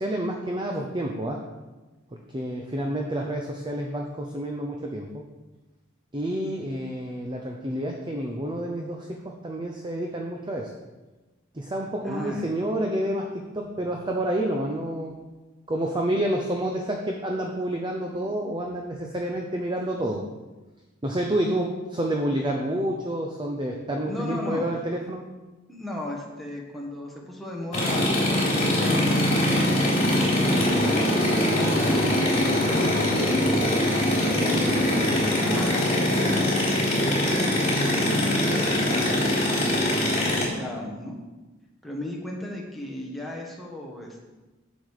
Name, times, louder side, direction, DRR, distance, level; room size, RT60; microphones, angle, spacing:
voice 1, 0.0-1.4 2.3-5.2 6.1-10.7 11.5-15.1 15.7-20.2 21.0-25.2, right 1 dB, 25° right, 1 dB, 0.7 m, -29 dB
voice 2, 12.0-12.4 24.1-24.7 25.7-29.3 29.8-35.9 36.4-36.5 37.0-41.2 41.8-44.3, left 1 dB, ahead, -2 dB, 1.4 m, -36 dB
sound 1, 27.7-40.4, left 1 dB, 35° left, 3.5 m, -22 dB
7.6 x 7.3 x 4.9 m, 1.2 s
head